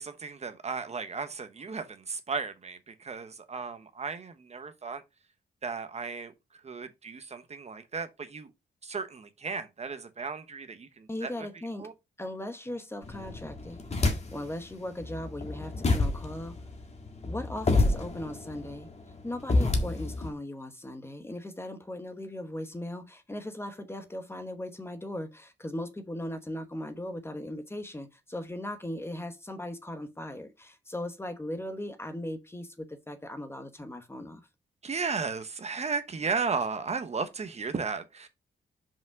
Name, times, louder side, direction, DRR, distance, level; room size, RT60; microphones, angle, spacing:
voice 1, 0.0-5.0 5.6-6.3 6.6-8.5 8.8-11.5 11.8-11.9 34.8-38.3, right 5 dB, 35° right, 1.0 m, -35 dB
voice 2, 11.1-11.9 12.2-13.8 14.3-16.5 17.3-18.9 19.2-34.4, left 1 dB, 15° left, 1.1 m, -38 dB
sound 1, 13.0-14.6 15.0-20.3, left 2 dB, 35° left, 1.8 m, -28 dB
6.0 x 5.2 x 4.7 m
wide cardioid pair, 130°, 18 cm